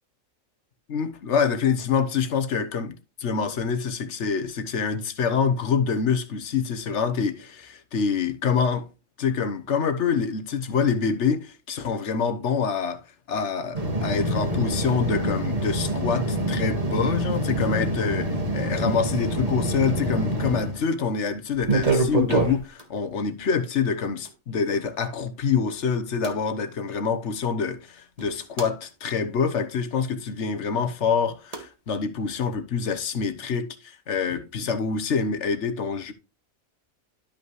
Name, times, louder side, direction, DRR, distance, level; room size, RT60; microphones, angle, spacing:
voice 1, 0.9-8.9 9.2-13.0 13.3-36.1, left 6 dB, 60° left, 1.2 m, -26 dB
sound 1, 13.7-20.8 21.6-22.8 24.2-24.3 26.2-26.3 28.2-28.7 31.5-31.6, right 1 dB, 25° right, 1.8 m, -26 dB
12.0 x 5.5 x 3.1 m
omnidirectional pair, 1.4 m